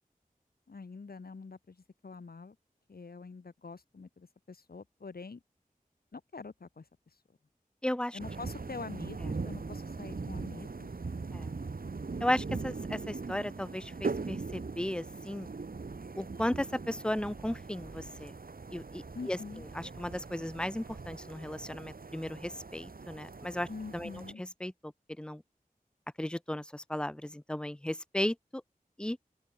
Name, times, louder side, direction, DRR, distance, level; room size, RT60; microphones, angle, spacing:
voice 1, 0.7-2.6 2.9-5.4 6.1-6.9 8.1-10.9 19.1-19.6 23.7-24.4, left 4 dB, 85° left, 2.8 m, -45 dB
voice 2, 7.8-8.2 11.3-11.5 12.2-15.5 16.2-18.3 18.7-19.0 19.3-19.4 19.8-23.7 23.9-24.1 24.6-24.7 25.2-25.4 26.2-28.6 29.0-29.2, left 1 dB, 5° left, 0.4 m, -35 dB
sound 1, 8.2-24.3, right 4 dB, 75° right, 2.2 m, -41 dB
open air
wide cardioid pair, 45°, 15 cm